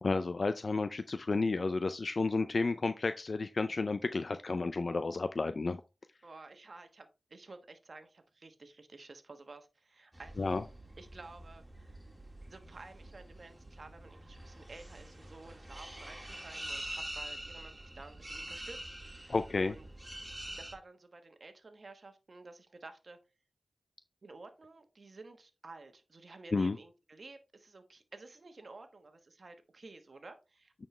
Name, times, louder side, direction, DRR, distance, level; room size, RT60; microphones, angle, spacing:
voice 1, 0.0-5.8 10.4-10.6 19.3-19.7 26.5-26.8, left 3 dB, 65° left, 0.4 m, -31 dB
voice 2, 6.2-10.5 11.0-11.6 12.5-19.8 20.6-23.2 24.2-30.9, right 3 dB, 65° right, 1.2 m, -52 dB
sound 1, 10.1-20.7, right 1 dB, 20° right, 2.1 m, -46 dB
9.1 x 4.3 x 3.2 m
cardioid pair, 45°, 0 cm